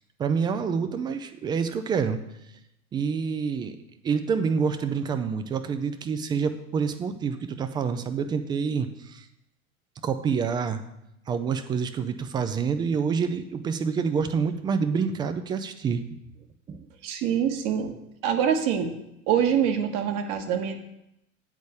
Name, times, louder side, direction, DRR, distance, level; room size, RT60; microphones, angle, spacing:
voice 1, 0.2-2.2 2.9-3.8 4.0-9.3 10.0-10.8 11.3-16.0 16.7-16.9, right 6 dB, 10° right, 9 dB, 0.3 m, -27 dB
voice 2, 17.0-17.9 18.2-18.9 19.3-20.8, right 8 dB, 45° right, 5 dB, 1.4 m, -25 dB
8.2 x 5.1 x 6.9 m, 0.83 s
figure-of-eight pair, 85°, 41 cm